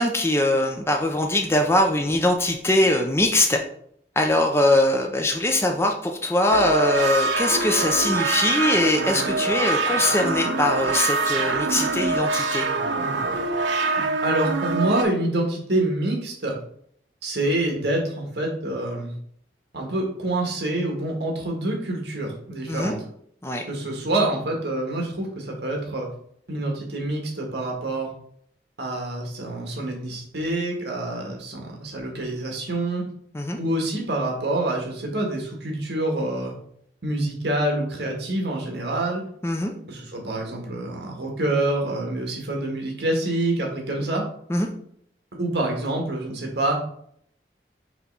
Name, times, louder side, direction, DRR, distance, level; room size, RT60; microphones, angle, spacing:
voice 1, 0.0-3.6 4.2-12.7 22.7-23.0 23.4-23.6 33.3-33.6 39.4-39.7 44.5-44.7, left 1 dB, 15° left, 2 dB, 0.6 m, -22 dB
sound 1, 6.5-15.0, right 3 dB, 90° right, 0.7 m, -24 dB
voice 2, 14.2-16.5 17.2-19.1 19.7-23.0 23.7-26.1 26.5-28.1 28.8-33.0 33.6-36.5 37.0-39.2 39.9-44.2 45.4-46.8, right 1 dB, 70° right, 0 dB, 1.7 m, -26 dB
5.9 x 3.1 x 5.5 m, 0.66 s
head